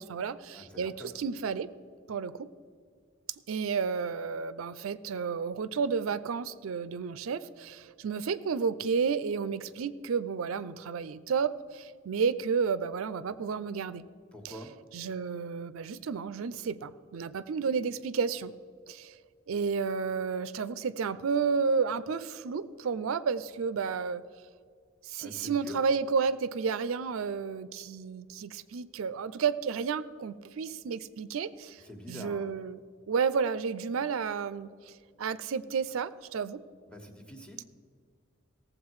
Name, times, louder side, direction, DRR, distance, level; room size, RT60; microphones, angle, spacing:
voice 1, 0.0-1.7 2.1-2.5 3.5-14.1 14.4-14.6 14.9-18.5 18.9-19.2 19.5-24.2 25.0-32.8 33.1-36.6, right 5 dB, 90° right, 14 dB, 0.4 m, -31 dB
voice 2, 0.5-1.1 14.3-14.8 25.2-25.8 31.8-32.5 36.9-37.6, equal, 5° left, 5 dB, 1.3 m, -45 dB
17.0 x 7.6 x 4.8 m, 2.1 s
head